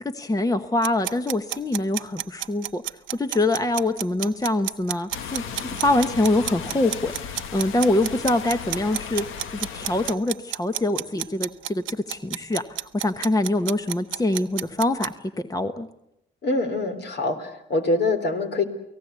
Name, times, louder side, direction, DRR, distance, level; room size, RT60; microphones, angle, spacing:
voice 1, 0.1-2.8 3.1-9.2 9.5-15.1 15.5-15.9, left 2 dB, 15° left, 9 dB, 1.2 m, -24 dB
sound 1, 0.8-15.1, right 13 dB, 80° right, 0.9 m, -31 dB
sound 2, 5.1-10.1, left 7 dB, 85° left, 1.5 m, -36 dB
voice 2, 16.4-18.6, left 2 dB, 60° left, 7 dB, 3.6 m, -24 dB
29.5 x 18.0 x 8.2 m, 0.85 s
cardioid pair, 90°, 20 cm